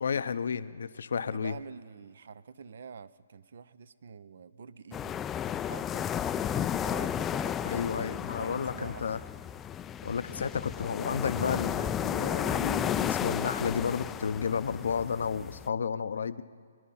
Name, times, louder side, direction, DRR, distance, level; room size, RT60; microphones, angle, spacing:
voice 1, 0.0-1.6 7.6-9.2 10.0-16.4, left 6 dB, 70° left, 13 dB, 0.6 m, -32 dB
voice 2, 1.1-5.2 5.6-9.0, right 6 dB, 65° right, 17 dB, 0.5 m, -47 dB
sound 1, 4.9-15.7, left 9 dB, 15° left, 0.3 m, -33 dB
22.5 x 11.0 x 5.6 m, 2.2 s
hypercardioid pair, 140°, 0 cm